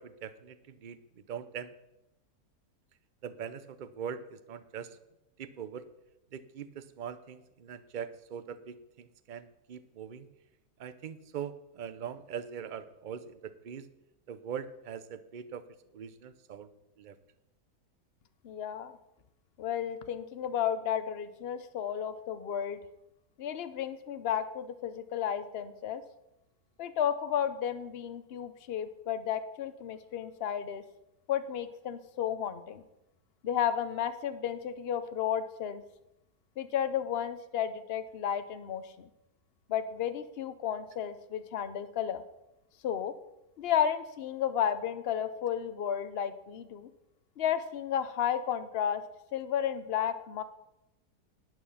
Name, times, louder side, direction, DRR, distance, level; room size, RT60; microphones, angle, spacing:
voice 1, 0.0-1.7 3.2-5.0 5.4-5.8 6.3-10.3 10.8-13.9 14.3-15.6 15.9-16.7 17.0-17.2, right 8 dB, 65° right, 13 dB, 0.4 m, -42 dB
voice 2, 18.4-18.9 19.6-22.8 23.4-26.0 26.8-30.8 31.3-32.8 33.4-35.8 36.6-39.1 39.7-42.2 42.8-43.1 43.6-46.9 47.4-49.0 49.3-50.4, left 9 dB, 50° left, 11 dB, 0.8 m, -32 dB
12.0 x 9.2 x 5.6 m, 0.90 s
omnidirectional pair, 1.8 m